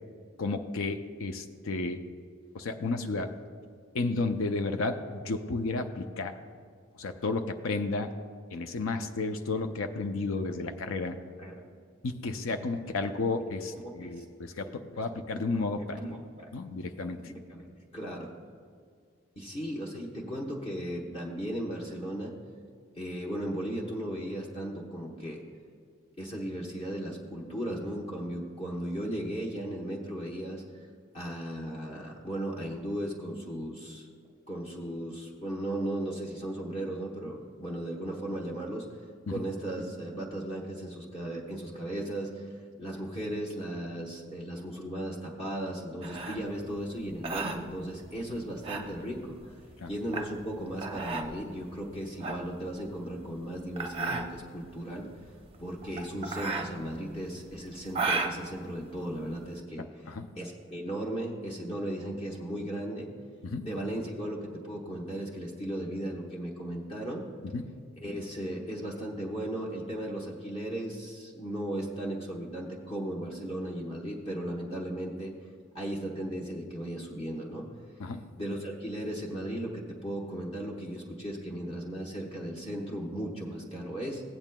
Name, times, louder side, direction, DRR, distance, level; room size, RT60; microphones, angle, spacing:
voice 1, 0.4-2.0 2.5-3.3 3.9-6.3 7.0-8.1 8.5-11.2 12.0-16.0 16.5-17.3 39.3-39.4 49.8-49.9 59.8-60.3 63.4-63.6 67.5-67.7 78.0-78.2, left 3 dB, 75° left, 7 dB, 0.5 m, -32 dB
voice 2, 13.8-14.2 14.5-14.7 15.5-15.6 15.9-16.5 17.2-18.3 19.4-22.3 23.0-25.4 26.2-30.6 31.1-34.1 34.5-38.9 39.3-42.5 42.8-49.5 49.9-55.1 55.6-60.1 60.4-63.1 63.6-67.3 68.0-75.3 75.7-77.7 78.4-84.2, right 1 dB, 30° left, -3 dB, 1.0 m, -36 dB
sound 1, 46.0-59.5, right 3 dB, 25° right, 0.6 m, -36 dB
16.0 x 8.9 x 2.2 m, 2.1 s
head